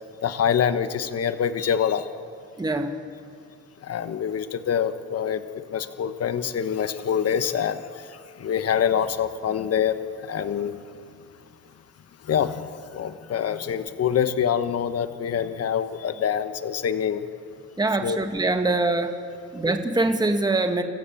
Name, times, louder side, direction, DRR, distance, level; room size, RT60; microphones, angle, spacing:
voice 1, 0.2-2.1 3.8-5.4 5.7-7.8 8.4-10.0 10.3-10.7 12.3-17.2 18.0-18.2, left 8 dB, 55° left, 11 dB, 1.2 m, -25 dB
voice 2, 2.6-2.9 17.8-19.1 19.5-20.8, right 2 dB, 15° right, 6 dB, 1.5 m, -23 dB
26.5 x 15.0 x 7.3 m, 2.1 s
cardioid pair, 90°, 30 cm